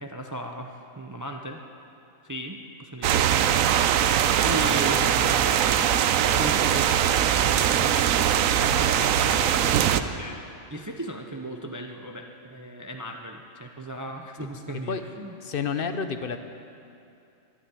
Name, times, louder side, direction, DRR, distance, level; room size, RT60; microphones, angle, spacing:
voice 1, 0.0-1.6 2.2-3.7 4.0-5.6 6.4-6.9 7.4-15.4, right 1 dB, 20° right, 3 dB, 0.6 m, -37 dB
sound 1, 3.0-10.0, right 9 dB, 90° right, 1.0 m, -21 dB
voice 2, 4.6-5.3 14.4-14.5 14.9-15.0 15.4-16.4, left 6 dB, 50° left, 8 dB, 0.9 m, -31 dB
12.5 x 11.5 x 9.0 m, 2.7 s
omnidirectional pair, 1.4 m